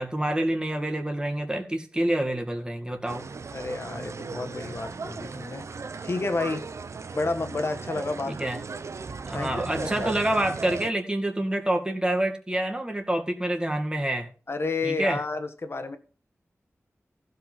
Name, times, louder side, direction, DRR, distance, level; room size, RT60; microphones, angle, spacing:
voice 1, 0.0-3.3 8.3-8.6 9.3-14.3 14.8-15.2, right 1 dB, 15° right, 2.2 m, -27 dB
sound 1, 3.1-10.9, right 4 dB, 75° right, 0.8 m, -36 dB
voice 2, 3.5-5.7 6.0-6.7 7.1-8.4 9.3-10.1 14.5-16.0, left 3 dB, 55° left, 1.4 m, -30 dB
15.5 x 5.4 x 5.7 m
wide cardioid pair, 75°, 5 cm